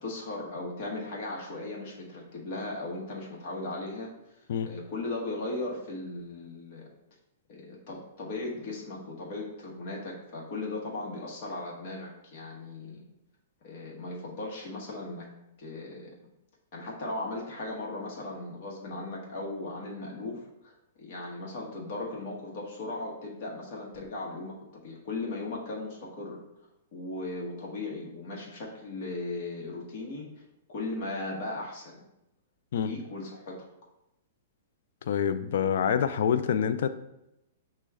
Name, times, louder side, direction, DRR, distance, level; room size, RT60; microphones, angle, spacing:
voice 1, 0.0-6.9 7.5-13.0 13.6-15.3 15.6-16.1 16.7-24.6 24.8-26.4 26.9-30.3 30.7-32.0 32.8-33.6, left 2 dB, 50° left, -3 dB, 1.0 m, -37 dB
voice 2, 35.1-36.9, left 8 dB, 65° left, 11 dB, 0.3 m, -26 dB
6.0 x 2.2 x 3.4 m, 0.87 s
hypercardioid pair, 145°, 0 cm